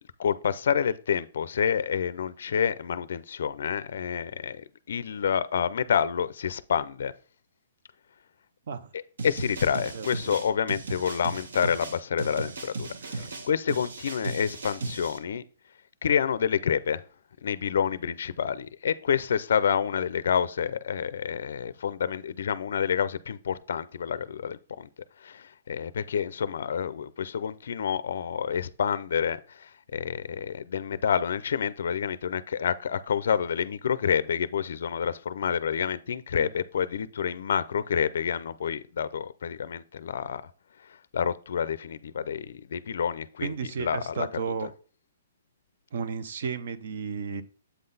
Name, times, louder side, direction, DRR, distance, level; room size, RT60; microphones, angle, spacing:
voice 1, 0.2-7.1 8.9-15.4 16.0-17.0 17.4-24.9 25.2-40.4 40.8-44.3 44.6-44.7, left 7 dB, 60° left, 0.4 m, -28 dB
sound 1, 9.2-15.2, right 3 dB, 70° right, 1.0 m, -36 dB
voice 2, 13.0-13.3 36.4-36.5 43.4-44.7 45.9-47.4, right 6 dB, 50° right, 0.6 m, -33 dB
8.0 x 3.8 x 4.0 m
hypercardioid pair, 180°, 0 cm